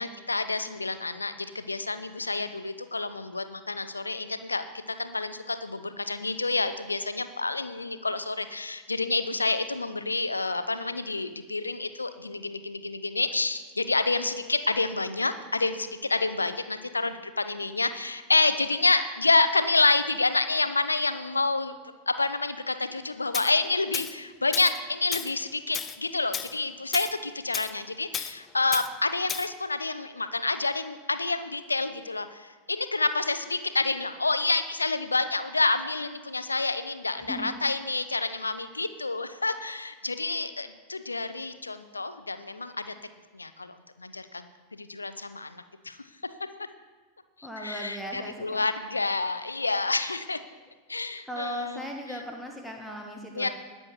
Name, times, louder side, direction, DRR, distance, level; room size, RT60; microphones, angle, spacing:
voice 1, 0.0-4.6 5.0-21.7 22.1-42.9 43.3-46.0 47.6-50.4 50.9-51.8 52.1-52.2 53.3-53.5, left 3 dB, 80° left, 11 dB, 0.8 m, -28 dB
Tools, 23.3-23.5 23.9-24.1 24.5-24.8 25.1-25.3 25.7-26.0 26.3-26.5 26.9-27.1 27.5-27.7 28.1-28.3 28.7-28.9 29.3-29.5, left 7 dB, 25° left, 0.6 m, -33 dB
voice 2, 47.4-48.6 51.3-53.5, equal, ahead, 0 dB, 1.7 m, -37 dB
20.0 x 6.9 x 4.7 m, 1.3 s
figure-of-eight pair, 90°, 0 cm